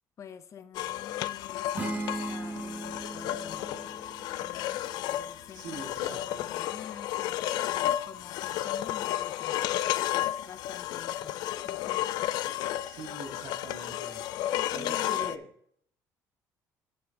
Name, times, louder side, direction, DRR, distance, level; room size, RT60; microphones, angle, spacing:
voice 1, 0.2-3.7 4.4-9.6 10.1-11.4 11.6-12.1 13.1-13.2 14.5-15.2, left 7 dB, 45° left, 10 dB, 0.8 m, -48 dB
sound 1, 0.7-15.4, left 13 dB, 75° left, 0.4 m, -32 dB
sound 2, 1.8-5.5, right 2 dB, 25° right, 1.2 m, -38 dB
voice 2, 5.5-6.5 12.9-14.2 14.7-15.5, right 2 dB, 90° right, 0 dB, 1.8 m, -43 dB
9.4 x 7.3 x 2.9 m, 0.66 s
cardioid pair, 115°, 7 cm